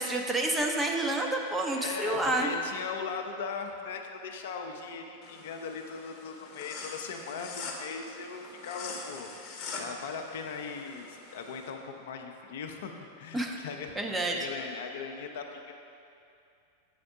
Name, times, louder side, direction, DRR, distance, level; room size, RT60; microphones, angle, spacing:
voice 1, 0.0-2.5 13.3-13.6 14.0-14.4, right 2 dB, 10° right, 1 dB, 0.6 m, -29 dB
voice 2, 1.8-9.3 9.8-15.7, left 5 dB, 55° left, 4 dB, 0.5 m, -39 dB
sound 1, 5.2-11.7, left 4 dB, 35° left, 0.9 m, -43 dB
7.8 x 4.2 x 4.9 m, 2.6 s
figure-of-eight pair, 90°, 0 cm